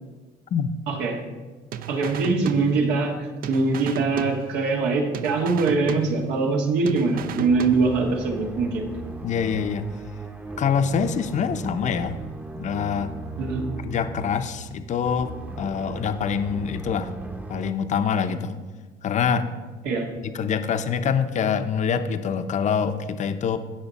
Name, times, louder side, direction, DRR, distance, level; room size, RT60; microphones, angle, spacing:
voice 1, 0.9-1.2 1.9-8.9 13.4-13.6 19.8-20.1, right 3 dB, 90° right, 1 dB, 1.6 m, -23 dB
sound 1, 1.7-3.2 3.4-4.9 5.1-6.6 6.9-8.2, right 8 dB, 60° right, 0.5 m, -35 dB
sound 2, 7.1-17.7, right 3 dB, 10° right, 0.7 m, -37 dB
voice 2, 9.2-9.9 10.6-12.2 12.6-13.1 13.8-17.2 17.5-18.6 19.0-19.5 20.4-23.6, left 7 dB, 45° left, 9 dB, 0.6 m, -25 dB
15.5 x 6.0 x 4.1 m, 1.3 s
cardioid pair, 110°, 17 cm